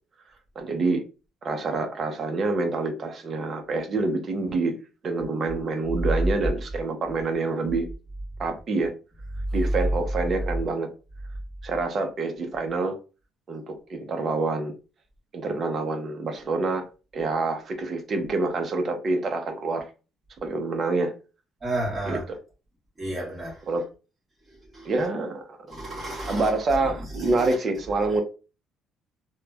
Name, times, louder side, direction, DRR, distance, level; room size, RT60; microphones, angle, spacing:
voice 1, 0.6-1.0 1.4-4.7 5.0-7.9 8.4-8.9 9.5-10.9 11.6-13.0 13.5-14.7 15.3-16.8 17.1-19.9 20.4-21.1 22.1-22.4 23.7-23.8 24.8-25.4 26.3-28.2, right 3 dB, 40° right, 0.5 m, -27 dB
voice 2, 21.6-22.2 23.0-23.6 24.7-24.9 25.7-26.5 27.2-27.5, right 1 dB, 20° right, 1.2 m, -31 dB
3.0 x 2.1 x 2.2 m
cardioid pair, 140°, 0 cm